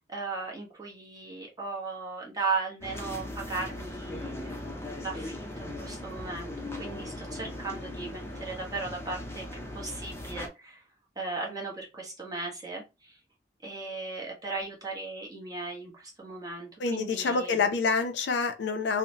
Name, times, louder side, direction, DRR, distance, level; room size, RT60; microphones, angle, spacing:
voice 1, 0.0-4.7 5.0-10.8 11.2-13.2 13.6-17.6, right 3 dB, 20° right, 0.9 m, -37 dB
sound 1, 2.8-10.5, left 1 dB, 15° left, 0.5 m, -39 dB
voice 2, 16.8-19.0, left 4 dB, 75° left, 0.5 m, -27 dB
2.9 x 2.0 x 2.7 m
head